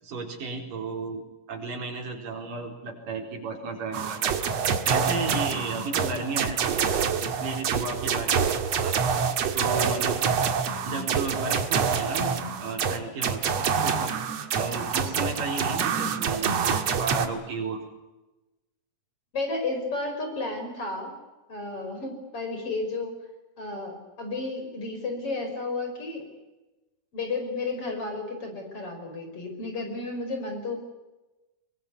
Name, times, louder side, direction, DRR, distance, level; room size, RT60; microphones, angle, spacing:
voice 1, 0.0-1.2 1.5-4.3 4.9-9.0 9.5-10.2 10.8-14.2 14.5-17.8, right 3 dB, 80° right, 1 dB, 6.2 m, -33 dB
sound 1, 3.9-17.3, right 6 dB, 55° right, 2.7 m, -26 dB
voice 2, 19.3-21.1 21.5-23.2 23.6-26.3 27.1-30.8, left 3 dB, 40° left, 5 dB, 6.2 m, -32 dB
23.5 x 23.5 x 9.6 m, 1.1 s
omnidirectional pair, 3.8 m